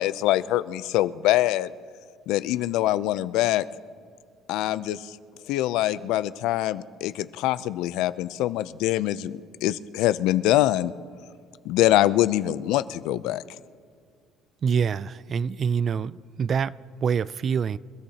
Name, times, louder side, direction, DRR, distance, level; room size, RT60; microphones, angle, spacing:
voice 1, 0.0-1.7 2.3-3.7 4.5-5.2 5.5-10.9 11.7-13.4, left 14 dB, 75° left, 0.4 m, -24 dB
voice 2, 14.6-17.8, right 6 dB, 35° right, 0.3 m, -26 dB
27.5 x 13.5 x 2.8 m
cardioid pair, 135°, 0 cm